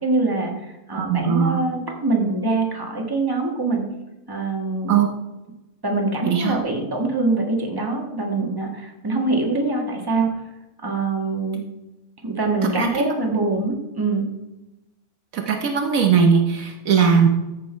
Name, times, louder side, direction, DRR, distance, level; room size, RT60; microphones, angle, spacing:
voice 1, 0.0-3.8 4.3-5.0 5.8-10.3 10.8-11.6 12.2-14.2, right 3 dB, 15° right, 0 dB, 1.5 m, -24 dB
voice 2, 0.9-1.6 4.9-5.1 6.3-6.6 12.6-13.0 15.3-17.3, right 6 dB, 65° right, 4 dB, 1.2 m, -19 dB
14.0 x 5.3 x 4.4 m, 0.99 s
omnidirectional pair, 1.6 m